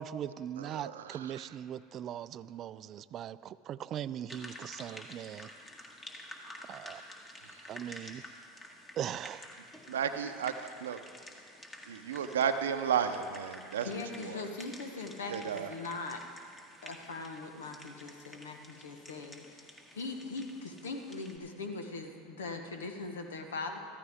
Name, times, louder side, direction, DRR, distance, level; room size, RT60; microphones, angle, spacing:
voice 1, 0.0-5.5 6.7-7.0 7.7-8.2 9.0-9.4, right 10 dB, 45° right, 16 dB, 0.3 m, -40 dB
voice 2, 0.6-1.4 9.9-11.0 11.9-13.9 14.2-14.4 15.3-15.7, right 8 dB, 85° right, 9 dB, 0.6 m, -33 dB
sound 1, 4.3-21.4, left 1 dB, 25° left, 1.8 m, -51 dB
voice 3, 13.8-16.2 16.8-19.7 19.9-23.8, left 3 dB, 85° left, 5 dB, 1.1 m, -40 dB
14.0 x 14.0 x 3.6 m, 2.3 s
hypercardioid pair, 85°, 0 cm